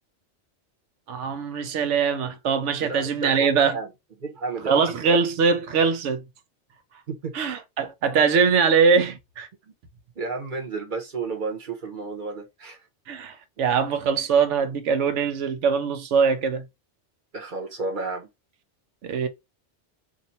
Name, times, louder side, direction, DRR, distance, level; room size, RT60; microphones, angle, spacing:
voice 1, 1.1-3.8 4.7-6.2 7.3-9.5 13.1-16.6 19.0-19.3, right 5 dB, 85° right, 1.0 m, -22 dB
voice 2, 2.8-3.9 4.2-4.8 7.1-7.3 9.7-9.8 10.2-12.8 17.3-18.3, right 4 dB, 45° right, 1.0 m, -32 dB
2.6 x 2.6 x 4.1 m
omnidirectional pair, 1.2 m